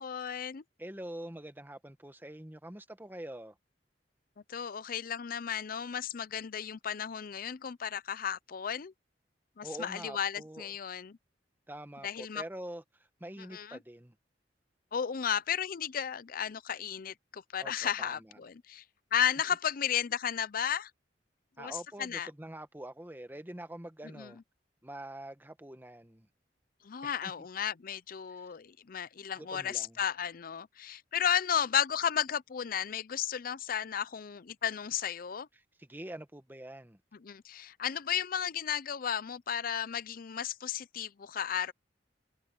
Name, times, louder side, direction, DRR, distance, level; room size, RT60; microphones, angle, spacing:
voice 1, 0.0-0.6 4.5-8.9 9.6-11.2 12.0-12.4 13.4-13.8 14.9-18.8 19.1-20.9 21.6-22.3 24.1-24.3 26.8-35.5 37.1-41.7, left 9 dB, 55° left, 0.5 m, -34 dB
voice 2, 0.8-3.6 9.6-10.7 11.7-12.8 13.2-14.1 17.6-18.4 21.6-24.4 24.8-26.3 27.0-27.3 28.4-28.5 29.4-30.0 35.8-37.0, right 1 dB, 10° right, 1.3 m, -45 dB
head